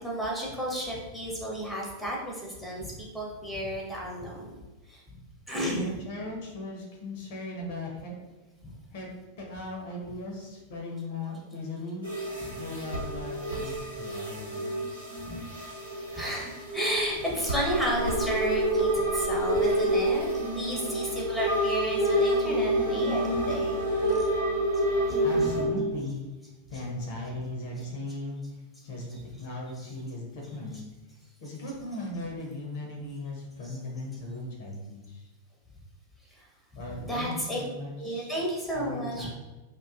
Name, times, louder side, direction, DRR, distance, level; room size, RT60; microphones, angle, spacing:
voice 1, 0.0-5.0 5.5-6.0 8.6-8.7 12.4-12.5 15.3-15.4 16.1-24.3 25.1-25.5 26.7-26.8 27.8-27.9 29.1-29.2 29.7-29.9 30.7-30.8 33.6-33.8 36.3-36.5 36.7-37.6 38.0-39.3, equal, ahead, -3 dB, 0.6 m, -33 dB
voice 2, 5.6-8.3 8.9-9.1 9.4-12.1 12.6-14.7 25.2-26.3 26.7-28.4 28.8-30.8 31.4-35.2 36.7-37.3 37.6-38.3 38.7-39.3, left 2 dB, 50° left, 0 dB, 0.5 m, -37 dB
sound 1, 12.0-25.6, right 1 dB, 90° right, 0.9 m, -28 dB
2.5 x 2.2 x 2.3 m, 1.1 s
figure-of-eight pair, 90°, 0 cm